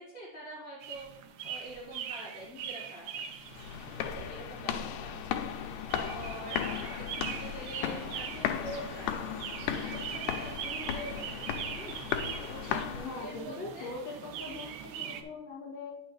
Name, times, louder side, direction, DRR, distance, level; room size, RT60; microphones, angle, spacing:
voice 1, 0.0-3.3 4.0-9.4 9.6-11.5 11.8-13.9, equal, 5° right, -7 dB, 1.8 m, -45 dB
sound 1, 0.8-15.2, right 8 dB, 75° right, 1.9 m, -42 dB
sound 2, 3.4-13.5, left 9 dB, 90° left, 2.2 m, -36 dB
voice 2, 13.0-15.9, left 3 dB, 35° left, -7 dB, 3.0 m, -41 dB
9.5 x 6.3 x 3.2 m, 0.77 s
omnidirectional pair, 3.7 m